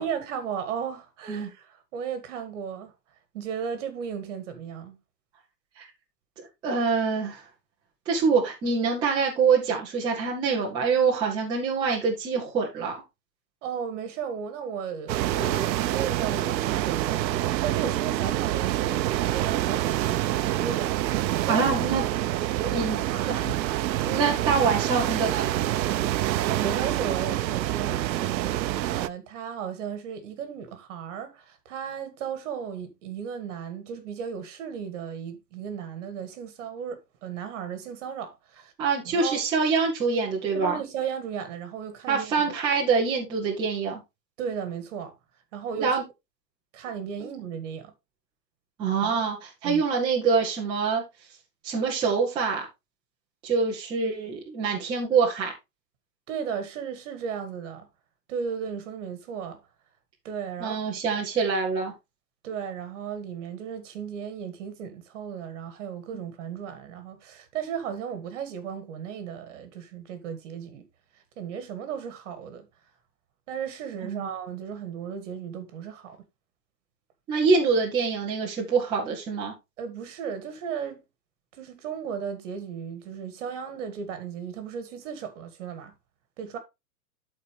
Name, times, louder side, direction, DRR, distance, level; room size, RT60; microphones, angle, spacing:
voice 1, 0.0-2.9 3.3-5.0 13.6-21.7 22.6-23.5 24.0-24.2 26.5-38.7 39.1-39.4 40.5-42.5 44.4-45.1 45.5-46.0 46.7-47.9 49.6-49.8 56.3-57.9 58.3-59.6 60.2-60.8 62.4-70.9 71.1-72.7 73.5-76.2 79.8-81.0 81.5-85.9 86.4-86.6, right 7 dB, 45° right, 1.9 m, -35 dB
voice 2, 6.6-7.4 8.1-13.0 21.5-22.0 22.7-23.0 23.3-23.4 24.1-25.5 38.8-40.8 42.1-44.0 45.8-46.0 47.2-47.3 48.8-51.0 51.6-52.6 53.4-55.5 60.6-61.9 74.0-74.3 77.3-79.5, right 5 dB, 10° right, 0.8 m, -25 dB
sound 1, 15.1-29.1, right 14 dB, 90° right, 0.7 m, -27 dB
12.5 x 4.3 x 3.2 m
supercardioid pair, 165°, 50 cm